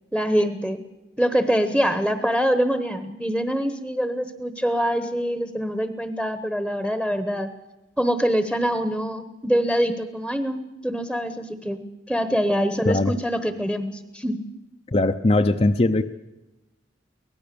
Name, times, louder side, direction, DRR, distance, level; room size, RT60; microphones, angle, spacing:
voice 1, 0.1-0.8 1.2-7.5 8.0-14.4, equal, 5° right, 9 dB, 1.0 m, -24 dB
voice 2, 14.9-16.0, left 2 dB, 35° left, 6 dB, 0.6 m, -20 dB
24.0 x 17.5 x 6.9 m, 1.0 s
head